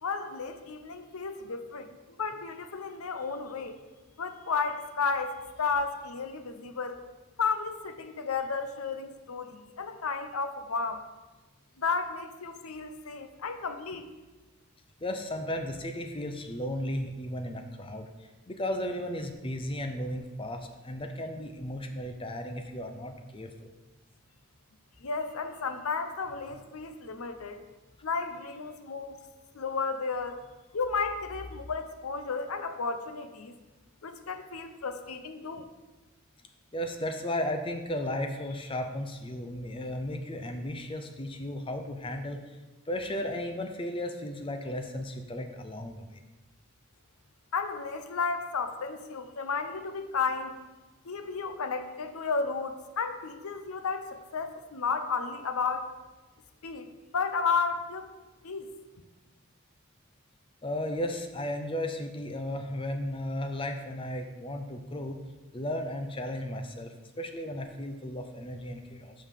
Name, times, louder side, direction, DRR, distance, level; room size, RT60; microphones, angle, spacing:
voice 1, 0.0-3.8 4.2-7.0 7.4-11.0 11.8-14.1 25.0-27.6 28.0-29.2 29.5-30.4 30.7-33.5 34.0-35.6 47.5-50.6 51.0-55.9 56.6-56.9 57.1-58.1 58.4-58.7, left 5 dB, 75° left, 8 dB, 0.7 m, -33 dB
voice 2, 15.0-23.7 36.7-42.4 42.9-46.2 60.6-65.2 65.5-69.1, left 1 dB, 25° left, 6 dB, 0.5 m, -35 dB
5.5 x 5.5 x 6.5 m, 1.1 s
head